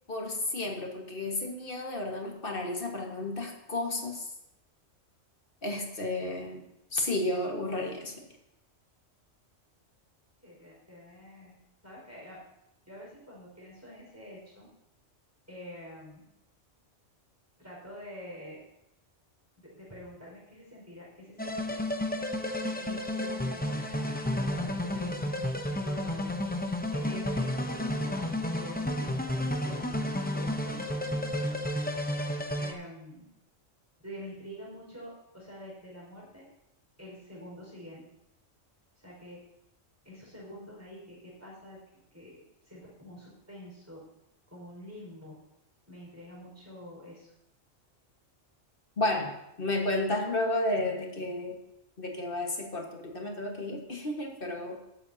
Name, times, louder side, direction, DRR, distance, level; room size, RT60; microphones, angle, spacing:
voice 1, 0.1-4.3 5.6-6.6 6.9-8.1 49.0-49.3 49.6-51.6 52.0-54.8, left 2 dB, 45° left, 1 dB, 1.9 m, -32 dB
voice 2, 10.4-11.6 11.8-12.4 12.8-14.7 15.5-16.2 17.6-18.6 19.6-21.8 22.6-25.1 25.8-26.3 26.9-31.6 32.6-33.3 34.0-36.4 37.0-38.0 39.0-39.4 40.0-41.8 42.1-44.0 44.5-45.4 45.9-47.3, left 1 dB, 10° right, -5 dB, 5.2 m, -47 dB
sound 1, 21.4-32.7, left 1 dB, 10° left, 0.7 m, -31 dB
20.0 x 8.2 x 2.9 m, 0.86 s
omnidirectional pair, 1.3 m